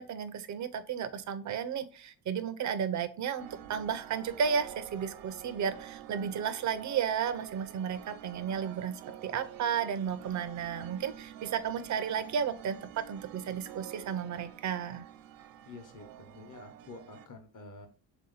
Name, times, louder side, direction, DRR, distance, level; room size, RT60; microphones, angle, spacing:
voice 1, 0.0-15.1, right 7 dB, 40° right, 12 dB, 0.5 m, -33 dB
sound 1, 3.4-17.3, right 11 dB, 90° right, 0.5 m, -48 dB
voice 2, 15.7-17.9, left 3 dB, 45° left, 5 dB, 1.0 m, -48 dB
3.6 x 2.8 x 3.8 m, 0.39 s
cardioid pair, 105°, 44 cm